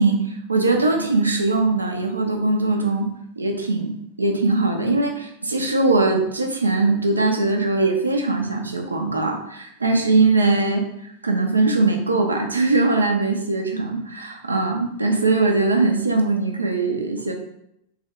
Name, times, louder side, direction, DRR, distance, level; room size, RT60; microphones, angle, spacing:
voice 1, 0.0-3.1 3.4-10.8 11.2-17.3, right 3 dB, 80° right, 3 dB, 0.5 m, -21 dB
3.4 x 2.2 x 3.5 m, 0.77 s
figure-of-eight pair, 90°, 0 cm